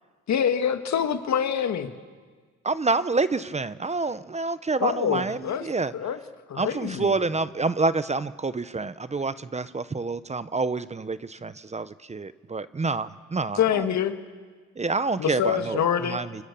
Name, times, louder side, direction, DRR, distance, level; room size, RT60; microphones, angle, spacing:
voice 1, 0.3-1.9 4.8-5.6 5.9-6.2 6.5-7.1 13.6-14.2 15.2-16.2, left 8 dB, 65° left, 7 dB, 2.0 m, -25 dB
voice 2, 2.6-5.9 6.6-13.9 14.8-16.4, right 3 dB, 20° right, 14 dB, 0.8 m, -28 dB
30.0 x 24.5 x 6.9 m, 1.5 s
cardioid pair, 90°, 30 cm